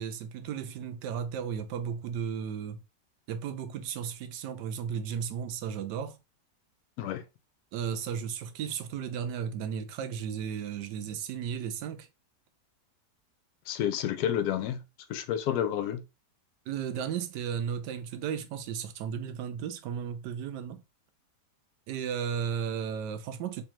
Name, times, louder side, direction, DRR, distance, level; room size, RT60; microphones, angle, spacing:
voice 1, 0.0-2.8 3.3-6.2 7.7-12.1 16.7-20.8 21.9-23.6, right 7 dB, 85° right, 1.3 m, -34 dB
voice 2, 13.7-14.8 15.1-16.0, left 10 dB, 75° left, 1.1 m, -30 dB
3.6 x 3.2 x 2.9 m
omnidirectional pair, 1.8 m